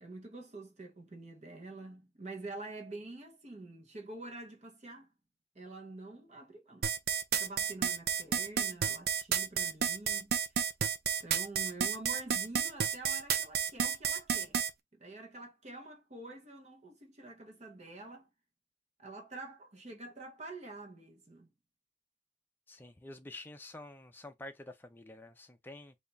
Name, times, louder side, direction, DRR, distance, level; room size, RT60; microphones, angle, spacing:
voice 1, 0.0-5.1 5.5-6.9 7.4-10.3 11.2-14.6 14.9-18.3 19.0-21.5, right 2 dB, 35° right, 0.8 m, -47 dB
sound 1, 6.8-14.7, right 7 dB, 55° right, 0.5 m, -31 dB
voice 2, 22.7-25.9, left 2 dB, 10° left, 0.5 m, -48 dB
3.4 x 2.4 x 4.0 m
head